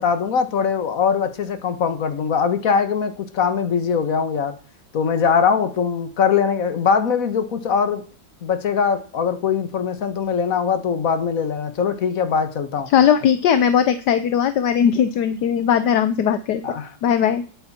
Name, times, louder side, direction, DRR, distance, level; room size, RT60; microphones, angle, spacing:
voice 1, 0.0-4.5 4.9-8.0 8.4-12.9 16.6-16.9, left 6 dB, 50° left, 9 dB, 1.8 m, -21 dB
voice 2, 12.9-16.6 17.0-17.4, left 8 dB, 70° left, 11 dB, 1.3 m, -18 dB
18.0 x 8.8 x 4.4 m, 0.39 s
omnidirectional pair, 1.9 m